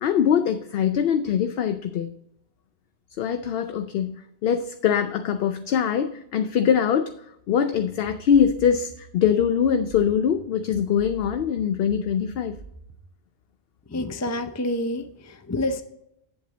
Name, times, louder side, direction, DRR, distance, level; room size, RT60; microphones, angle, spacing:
voice 1, 0.0-2.1 3.2-4.2 4.4-7.1 7.5-12.6, left 8 dB, 65° left, 9 dB, 0.7 m, -23 dB
sound 1, 7.7-13.1, right 3 dB, 20° right, 0.7 m, -46 dB
voice 2, 13.9-15.8, left 1 dB, 25° left, 8 dB, 0.4 m, -28 dB
8.3 x 7.9 x 4.0 m, 0.78 s
omnidirectional pair, 1.2 m